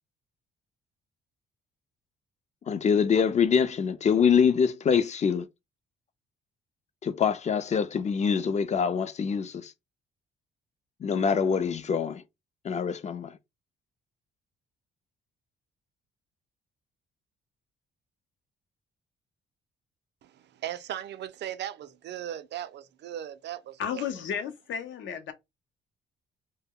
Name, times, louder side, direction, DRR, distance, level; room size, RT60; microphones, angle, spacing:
voice 1, 2.7-5.5 7.0-9.7 11.0-12.2 12.6-13.4, left 6 dB, 35° left, 0.4 m, -25 dB
voice 2, 20.2-24.1, right 11 dB, 60° right, 0.4 m, -38 dB
voice 3, 23.8-25.3, left 8 dB, 70° left, 0.7 m, -33 dB
2.1 x 2.1 x 3.6 m
cardioid pair, 90°, 20 cm